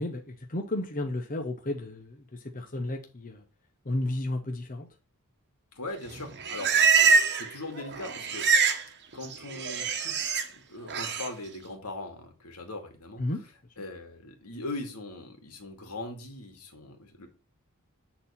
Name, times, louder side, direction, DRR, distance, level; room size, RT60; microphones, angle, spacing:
voice 1, 0.0-3.4 3.8-4.9 13.2-13.4, left 1 dB, 40° left, 1.0 m, -33 dB
voice 2, 5.7-8.5 9.1-10.4 10.7-13.2 13.8-17.3, left 2 dB, 85° left, 2.4 m, -40 dB
Livestock farm animals working animals, 6.1-7.5 7.8-8.8 9.1-10.4 10.9-11.3, right 5 dB, 50° right, 1.1 m, -24 dB
9.2 x 4.2 x 5.8 m
head